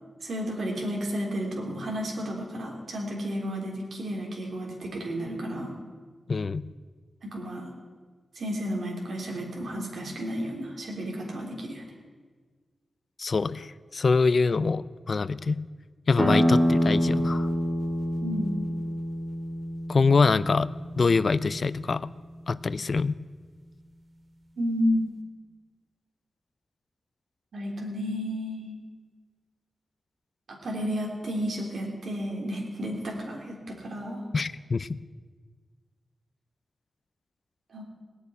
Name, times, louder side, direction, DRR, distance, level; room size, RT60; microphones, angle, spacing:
voice 1, 0.2-5.7 7.2-7.7 8.4-11.8 18.2-18.5 24.6-25.1 27.5-28.8 30.5-34.2 37.7-37.8, equal, 65° right, -1 dB, 3.5 m, -32 dB
voice 2, 6.3-6.7 13.2-15.6 16.1-17.5 19.9-22.1 22.5-23.2 34.3-35.0, left 4 dB, 50° left, 17 dB, 0.4 m, -25 dB
sound 1, 16.2-21.6, equal, 25° right, 2.2 m, -27 dB
18.5 x 6.9 x 9.7 m, 1.5 s
wide cardioid pair, 120°, 0 cm